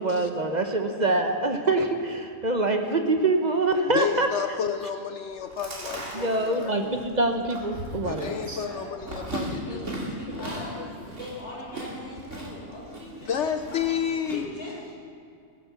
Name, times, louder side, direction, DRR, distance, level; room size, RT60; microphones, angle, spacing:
voice 1, 0.0-4.3 6.1-8.6, right 2 dB, 35° right, 5 dB, 0.9 m, -25 dB
voice 2, 3.9-7.0 8.0-11.0 13.3-14.5, left 8 dB, 65° left, 8 dB, 0.8 m, -31 dB
Chewing mastication, 5.3-14.4, right 1 dB, 55° right, 2.6 m, -38 dB
voice 3, 8.5-9.0 9.6-13.8 14.3-15.0, left 1 dB, 40° left, -4 dB, 4.1 m, -41 dB
16.5 x 8.7 x 6.9 m, 2.3 s
omnidirectional pair, 1.5 m